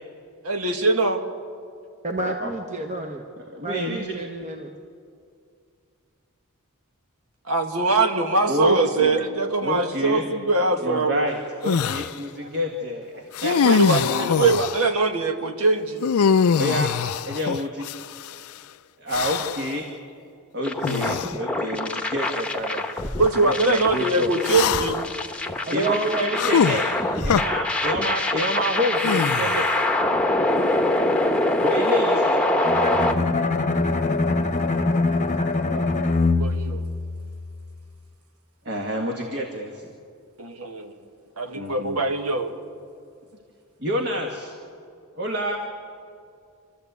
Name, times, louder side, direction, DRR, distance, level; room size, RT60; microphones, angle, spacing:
voice 1, 0.4-1.2 7.5-11.3 13.5-16.1 23.2-25.0 35.7-35.9 36.2-36.8 40.4-40.9 41.4-42.5, right 3 dB, 80° right, 5 dB, 1.7 m, -22 dB
voice 2, 2.0-3.2 3.6-4.7 12.4-12.5 25.7-27.0, right 2 dB, 35° right, 3 dB, 1.1 m, -30 dB
voice 3, 3.5-4.1 8.5-9.2 9.6-10.3 10.8-11.4 11.6-14.3 16.6-16.9 17.3-17.9 19.0-19.8 20.5-22.9 23.4-24.3 25.0-25.3 25.7-26.8 27.2-29.7 31.6-33.2 38.7-39.9 41.5-42.0 43.8-44.5 45.2-45.6, equal, 50° right, 2 dB, 1.7 m, -28 dB
sound 1, 11.7-12.1 13.3-14.9 16.0-18.3 19.1-19.7 20.8-21.3 22.2-22.3 24.4-25.1 26.4-27.4 29.0-29.8, left 6 dB, 75° left, 0.4 m, -23 dB
sound 2, 20.6-33.1, left 1 dB, 5° left, 1.0 m, -24 dB
Bowed string instrument, 32.6-37.7, left 3 dB, 35° left, 0.9 m, -23 dB
27.5 x 13.0 x 8.2 m, 2.3 s
head